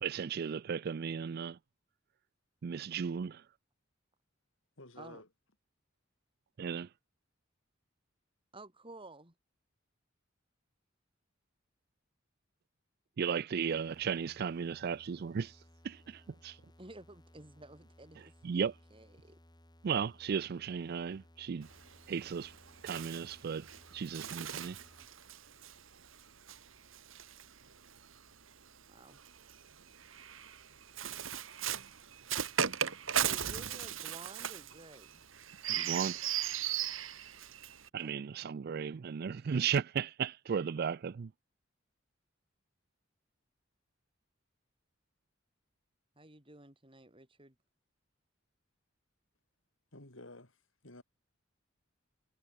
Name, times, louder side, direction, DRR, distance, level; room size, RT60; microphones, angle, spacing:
voice 1, 0.0-1.6 2.6-3.4 6.6-6.9 13.2-15.6 15.8-16.6 18.4-18.7 19.8-21.7 22.1-22.5 22.8-24.8 35.7-36.2 37.9-41.3, right 6 dB, 50° right, 0.4 m, -35 dB
voice 2, 4.8-5.3 49.9-50.6 50.8-51.0, left 2 dB, 75° left, 5.2 m, -51 dB
voice 3, 8.5-9.3 16.8-19.4 28.9-29.2 33.2-35.2 38.0-38.2 46.2-47.6, right 2 dB, 25° right, 4.4 m, -53 dB
sound 1, 13.6-25.1, equal, 20° left, 5.2 m, -61 dB
Bird, 21.6-28.2 29.1-37.9, right 9 dB, 80° right, 2.3 m, -38 dB
head